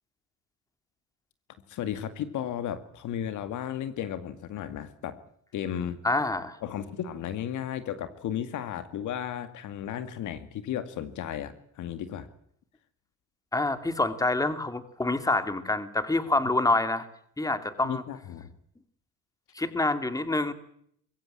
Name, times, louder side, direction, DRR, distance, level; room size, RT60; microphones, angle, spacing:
voice 1, 1.7-5.2 5.5-6.0 6.6-12.3 17.8-18.5, left 10 dB, 65° left, 11 dB, 2.1 m, -34 dB
voice 2, 6.0-6.6 13.5-17.1 17.4-18.0 19.5-20.5, left 2 dB, 10° left, 10 dB, 2.4 m, -27 dB
22.0 x 16.0 x 9.9 m, 0.68 s
supercardioid pair, 90°, 33 cm